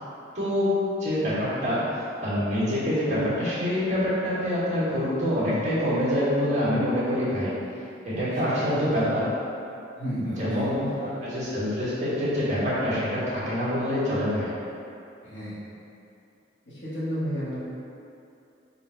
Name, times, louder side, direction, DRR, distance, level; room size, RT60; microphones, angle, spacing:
voice 1, 0.3-0.7 1.0-7.5 8.0-9.3 10.2-14.5, equal, 40° right, -11 dB, 1.4 m, -26 dB
voice 2, 8.1-8.9 10.0-11.1 15.2-15.6 16.7-17.6, equal, 75° left, -10 dB, 1.3 m, -33 dB
3.6 x 2.5 x 4.4 m, 2.7 s
head